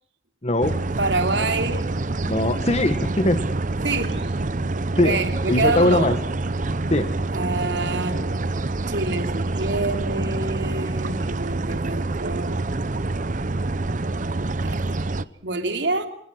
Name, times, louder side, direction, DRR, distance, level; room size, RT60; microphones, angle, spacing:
voice 1, 0.4-0.8 2.3-3.4 5.0-5.2 5.5-6.2 6.9-7.1, left 1 dB, 35° left, 9 dB, 1.4 m, -20 dB
sound 1, 0.6-15.2, right 2 dB, 45° right, 0.8 m, -26 dB
voice 2, 1.0-1.9 3.8-4.3 5.0-6.2 7.3-8.5 8.9-12.7 14.6-14.8 15.4-16.1, right 3 dB, 80° right, 6 dB, 3.0 m, -27 dB
26.5 x 20.0 x 6.3 m, 0.67 s
head